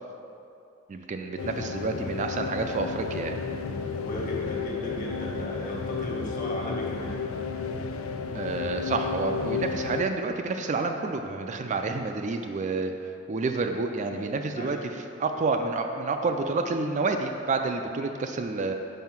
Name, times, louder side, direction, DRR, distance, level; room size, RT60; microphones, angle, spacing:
voice 1, 0.9-3.4 8.3-12.9 13.3-18.7, right 3 dB, 35° right, 5 dB, 0.3 m, -29 dB
sound 1, 1.4-10.0, left 5 dB, 90° left, 0.5 m, -32 dB
voice 2, 3.9-7.2 14.1-14.3 14.6-14.8, equal, 40° left, -3 dB, 1.4 m, -36 dB
5.5 x 5.5 x 5.9 m, 2.7 s
head